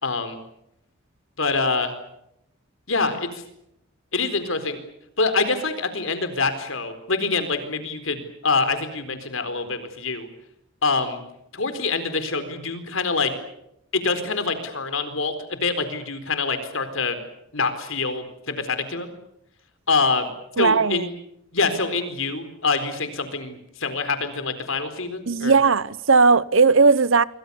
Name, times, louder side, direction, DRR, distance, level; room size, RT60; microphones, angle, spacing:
voice 1, 0.0-0.4 1.4-1.9 2.9-3.4 4.1-4.8 5.2-10.3 10.8-11.2 11.5-13.3 13.9-17.2 17.5-19.1 19.9-20.3 20.6-21.1 21.5-25.5, left 4 dB, 75° left, 4.3 m, -25 dB
voice 2, 20.6-21.1 25.3-27.2, right 4 dB, 70° right, 0.9 m, -17 dB
28.0 x 24.5 x 7.1 m
head